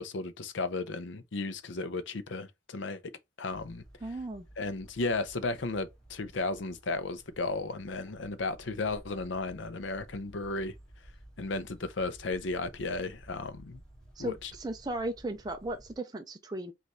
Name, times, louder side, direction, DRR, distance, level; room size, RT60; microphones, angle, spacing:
voice 1, 0.0-3.0 3.4-3.8 4.6-10.7 11.4-13.8 14.2-14.5, left 3 dB, 70° left, 0.6 m, -34 dB
sound 1, 3.5-16.0, right 1 dB, 5° left, 1.4 m, -54 dB
voice 2, 4.0-4.5 14.2-16.7, right 2 dB, 20° right, 0.4 m, -36 dB
5.3 x 2.5 x 3.0 m
head